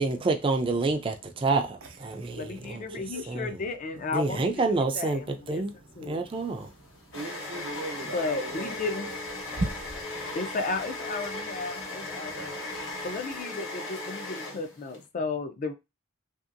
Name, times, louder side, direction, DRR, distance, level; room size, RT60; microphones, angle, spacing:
voice 1, 0.0-2.8 3.3-3.5 4.0-5.7 6.0-6.7, right 3 dB, 25° right, 0.4 m, -28 dB
voice 2, 1.8-3.5 5.4-10.4 11.2-13.1, right 2 dB, 90° right, 0.7 m, -44 dB
voice 3, 2.3-5.6 6.0-6.3 8.1-9.1 10.3-12.6 13.0-15.7, left 4 dB, 40° left, 0.4 m, -34 dB
sound 1, 2.6-10.0, right 2 dB, 60° right, 0.9 m, -42 dB
sound 2, 6.3-15.0, left 2 dB, 80° left, 1.1 m, -37 dB
2.9 x 2.7 x 2.5 m
head